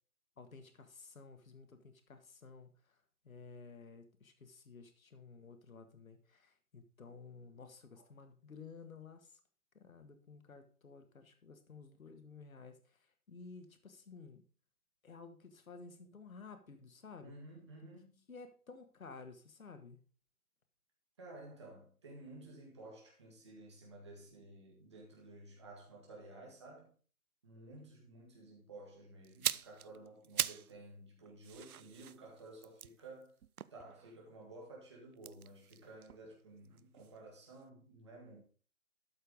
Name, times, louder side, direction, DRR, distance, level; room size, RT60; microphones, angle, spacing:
voice 1, 0.4-9.4 9.7-14.4 15.0-17.3 18.3-20.0, left 4 dB, 65° left, 8 dB, 1.7 m, -54 dB
voice 2, 17.2-18.2 21.2-26.9 27.4-33.3 33.7-38.4, right 2 dB, 20° right, -2 dB, 1.8 m, -53 dB
sound 1, 29.2-30.8 31.1-34.3 35.1-37.2 37.4-37.6, right 9 dB, 70° right, 0.6 m, -41 dB
12.5 x 4.5 x 4.9 m, 0.40 s
hypercardioid pair, 180°, 45 cm